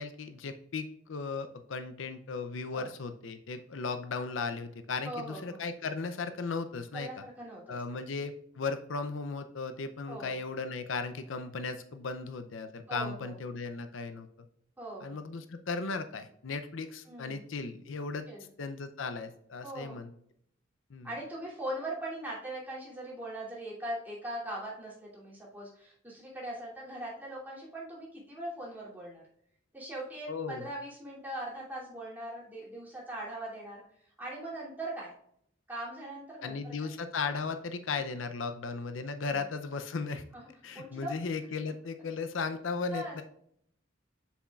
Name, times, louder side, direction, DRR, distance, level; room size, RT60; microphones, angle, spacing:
voice 1, 0.0-7.1 7.7-14.5 15.0-18.3 18.6-20.1 20.9-21.1 30.3-30.7 36.4-40.2 40.6-43.2, left 4 dB, 75° left, 8 dB, 0.6 m, -36 dB
voice 2, 5.0-5.6 6.9-7.6 10.1-10.4 12.9-13.3 14.8-15.3 17.1-17.4 18.3-18.5 19.6-20.0 21.0-29.2 29.7-33.8 34.2-35.1 35.7-36.9 40.3-40.4 40.7-41.2 42.9-43.2, right 1 dB, 10° right, -6 dB, 2.8 m, -40 dB
7.2 x 6.9 x 2.4 m, 0.70 s
head